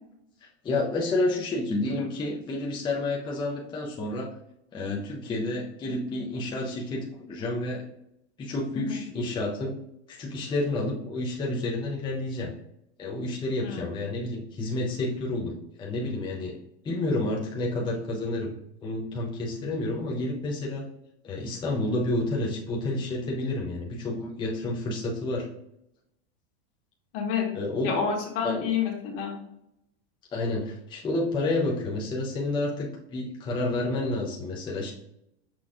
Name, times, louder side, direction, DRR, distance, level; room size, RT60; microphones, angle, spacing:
voice 1, 0.6-4.3 4.7-7.8 8.4-9.8 10.1-12.5 13.0-16.6 16.8-18.5 18.8-20.8 21.2-25.5 27.5-27.9 28.4-28.7 30.3-34.9, left 2 dB, 15° left, -3 dB, 0.6 m, -30 dB
voice 2, 13.6-14.1 27.1-27.4 27.8-29.3, left 7 dB, 55° left, 0 dB, 1.5 m, -29 dB
6.0 x 2.3 x 3.7 m, 0.79 s
supercardioid pair, 135°, 31 cm